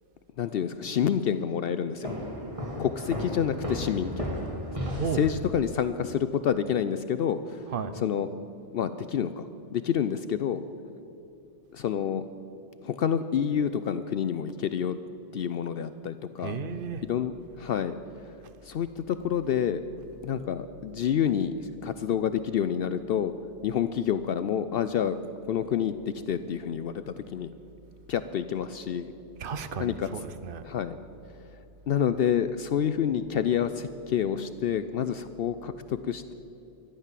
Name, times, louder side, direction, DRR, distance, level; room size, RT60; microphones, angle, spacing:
voice 1, 0.4-2.1 2.8-4.3 5.1-7.6 8.0-8.3 8.7-10.6 11.7-12.2 12.8-15.0 15.3-16.6 17.1-17.9 18.6-19.8 20.2-21.5 21.8-23.3 23.6-25.2 25.5-25.9 26.3-27.5 28.1-29.1 29.8-30.1 30.6-31.0 31.9-36.3, left 8 dB, 65° left, 11 dB, 0.7 m, -28 dB
sound 1, 2.0-5.7, equal, 30° right, 2.5 m, -34 dB
voice 2, 4.7-5.3 7.7-8.0 16.4-17.0 29.4-30.6, right 5 dB, 55° right, 11 dB, 0.9 m, -34 dB
13.5 x 11.0 x 7.4 m, 2.8 s
omnidirectional pair, 1.2 m